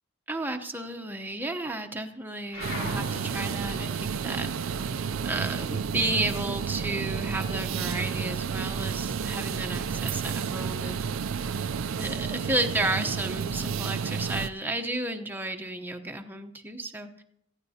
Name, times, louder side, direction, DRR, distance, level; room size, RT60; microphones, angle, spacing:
voice 1, 0.3-4.8 5.2-11.0 12.0-17.2, right 2 dB, 10° right, 5 dB, 0.9 m, -32 dB
sound 1, 2.5-7.4 7.7-9.1, left 1 dB, 65° left, 4.2 m, -43 dB
sound 2, 2.6-14.5, right 6 dB, 85° right, 0.5 m, -31 dB
19.5 x 15.0 x 2.8 m, 0.76 s
head